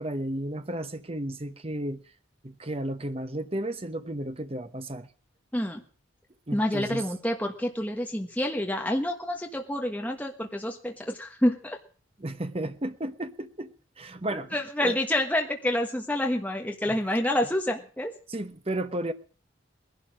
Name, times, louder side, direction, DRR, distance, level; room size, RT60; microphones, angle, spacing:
voice 1, 0.0-2.0 2.4-5.1 6.5-7.0 12.2-15.0 16.8-17.0 18.3-19.1, right 1 dB, 30° right, 1.0 m, -33 dB
voice 2, 5.5-5.8 6.5-11.8 14.5-18.1, left 1 dB, 5° left, 1.4 m, -28 dB
20.0 x 11.5 x 6.3 m
head